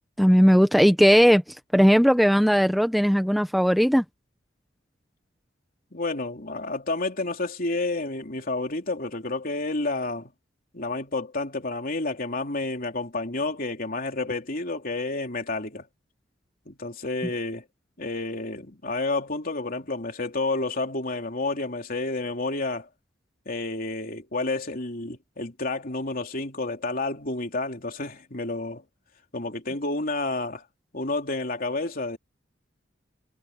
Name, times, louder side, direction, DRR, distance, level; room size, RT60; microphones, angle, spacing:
voice 1, 0.2-1.4 1.7-4.0, equal, ahead, 1.0 m, -18 dB
voice 2, 5.9-10.3 10.7-15.9 16.7-17.6 18.0-22.9 23.4-28.8 29.3-30.6 30.9-32.2, left 2 dB, 50° left, 3.4 m, -30 dB
head